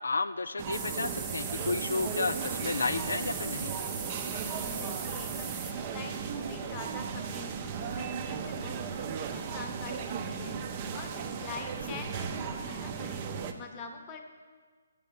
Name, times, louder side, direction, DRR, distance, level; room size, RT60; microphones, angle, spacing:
voice 1, 0.0-3.7, left 3 dB, 85° left, 12 dB, 0.3 m, -32 dB
sound 1, 0.6-13.5, right 6 dB, 30° right, 0.6 m, -36 dB
sound 2, 0.7-5.7, right 5 dB, 15° right, 1.0 m, -39 dB
voice 2, 4.2-13.3 13.5-14.2, left 4 dB, 25° left, 5 dB, 0.9 m, -45 dB
6.8 x 6.6 x 6.9 m, 1.5 s
hypercardioid pair, 155°, 0 cm